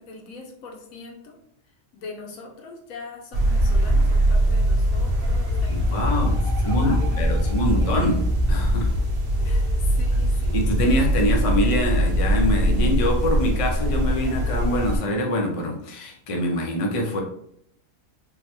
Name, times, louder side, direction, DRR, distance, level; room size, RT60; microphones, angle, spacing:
voice 1, 0.0-1.4 1.9-8.1 9.3-10.7, left 3 dB, 85° left, 1 dB, 1.2 m, -41 dB
sound 1, 3.3-15.0, equal, 50° right, 0.8 m, -21 dB
voice 2, 5.7-6.4 6.6-9.0 10.5-17.2, equal, 50° left, 1 dB, 0.4 m, -25 dB
3.8 x 2.1 x 2.9 m, 0.71 s
omnidirectional pair, 1.4 m